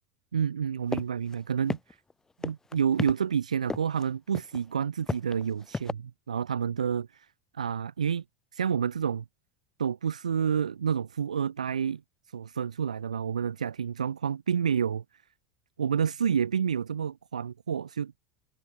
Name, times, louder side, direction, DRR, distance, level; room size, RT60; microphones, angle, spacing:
voice 1, 0.3-2.0 2.4-7.3 7.5-8.2 8.5-9.2 9.8-12.0 12.3-15.0 15.8-18.1, right 7 dB, 75° right, 2.3 m, -29 dB
sound 1, 0.9-1.0 1.3-1.4 1.7-2.1 2.4-3.1 3.7-4.0 4.3-4.6 5.1-5.9, left 3 dB, 15° left, 4.3 m, -32 dB
figure-of-eight pair, 75°, 4 cm